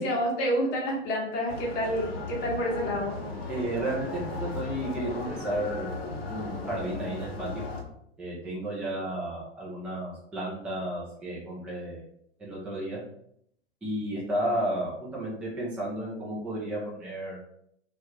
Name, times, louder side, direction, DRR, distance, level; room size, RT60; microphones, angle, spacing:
voice 1, 0.0-3.2, equal, 30° left, -2 dB, 0.8 m, -28 dB
sound 1, 1.5-7.8, left 3 dB, 60° left, 0.7 m, -36 dB
voice 2, 3.5-6.0 6.3-7.6 8.2-12.0 12.4-13.0 13.8-17.4, right 1 dB, 5° right, -6 dB, 0.4 m, -33 dB
2.4 x 2.1 x 3.2 m, 0.72 s
figure-of-eight pair, 105°, 35 cm